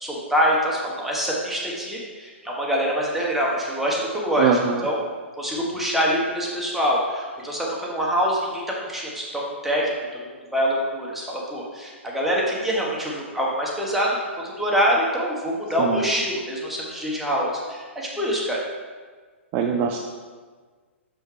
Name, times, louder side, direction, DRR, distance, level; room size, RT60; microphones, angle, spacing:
voice 1, 0.0-4.5 4.8-5.0 5.4-8.6 8.9-10.1 10.5-14.1 14.4-18.6, equal, 5° right, -4 dB, 1.3 m, -25 dB
voice 2, 4.4-4.8 15.8-16.1 19.5-20.0, right 6 dB, 30° right, 3 dB, 0.4 m, -22 dB
6.3 x 6.2 x 3.3 m, 1.5 s
figure-of-eight pair, 115°, 7 cm